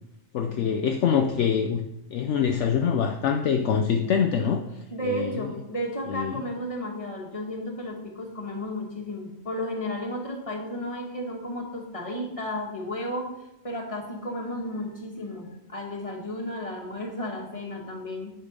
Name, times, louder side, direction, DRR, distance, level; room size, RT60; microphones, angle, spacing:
voice 1, 0.3-4.6 5.0-5.5 6.1-6.4, left 7 dB, 65° left, 5 dB, 0.9 m, -25 dB
voice 2, 4.9-13.3 13.6-18.3, equal, 25° left, 0 dB, 1.7 m, -33 dB
8.7 x 6.0 x 5.2 m, 0.89 s
omnidirectional pair, 1.4 m